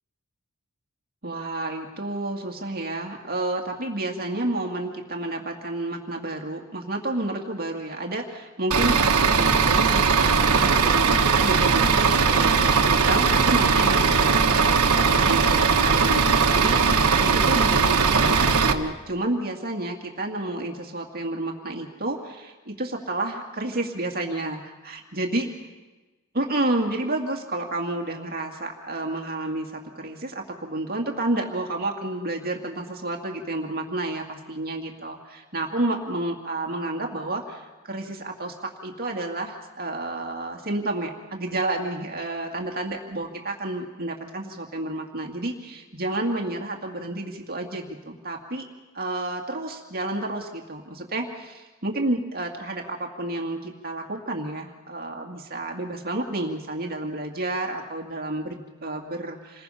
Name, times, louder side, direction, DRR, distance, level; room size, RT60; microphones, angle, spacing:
voice 1, 1.2-25.5 26.3-48.7 48.9-59.6, right 2 dB, 45° right, 1 dB, 2.1 m, -30 dB
Bus / Idling, 8.7-18.7, right 5 dB, 80° right, 1.4 m, -19 dB
28.0 x 21.0 x 5.7 m, 1.2 s
head